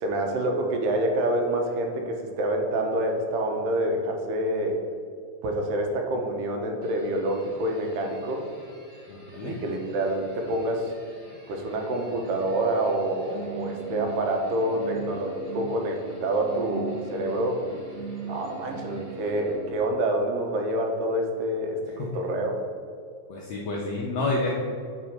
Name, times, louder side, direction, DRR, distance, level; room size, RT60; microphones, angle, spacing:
voice 1, 0.0-4.8 5.4-8.4 9.4-10.9 11.5-17.6 18.3-22.6, right 1 dB, 75° right, 2 dB, 2.4 m, -27 dB
sound 1, 6.8-20.0, right 5 dB, 55° right, 0.5 m, -41 dB
voice 2, 9.1-9.6 22.0-22.1 23.3-24.5, left 2 dB, 80° left, -2 dB, 1.5 m, -29 dB
7.4 x 3.9 x 6.4 m, 2.2 s
omnidirectional pair, 4.1 m